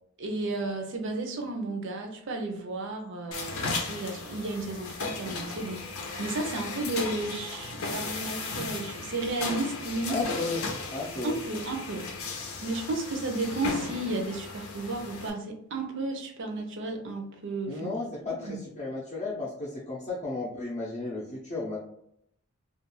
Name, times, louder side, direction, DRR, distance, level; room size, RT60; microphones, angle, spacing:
voice 1, 0.2-10.2 11.2-12.1 12.6-17.9 18.3-18.6, right 2 dB, 60° right, 4 dB, 0.5 m, -33 dB
sound 1, 3.3-15.3, left 3 dB, 85° left, 0.6 m, -36 dB
voice 2, 10.1-11.4 17.7-21.8, left 3 dB, 35° left, -7 dB, 0.5 m, -34 dB
2.4 x 2.2 x 3.0 m, 0.72 s
head